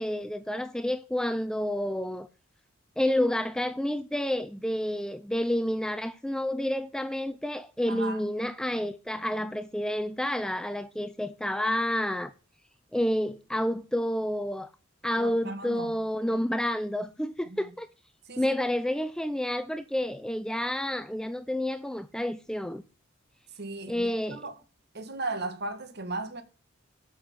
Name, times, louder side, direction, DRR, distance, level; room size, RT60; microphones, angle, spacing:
voice 1, 0.0-2.3 3.0-12.3 12.9-14.7 15.0-17.9 18.4-22.8 23.9-24.4, left 1 dB, 5° left, 0.4 m, -29 dB
voice 2, 7.9-8.2 15.2-16.0 17.4-17.6 18.3-18.5 23.6-24.6 24.9-26.4, right 2 dB, 50° right, 1.6 m, -36 dB
8.7 x 6.3 x 6.9 m
head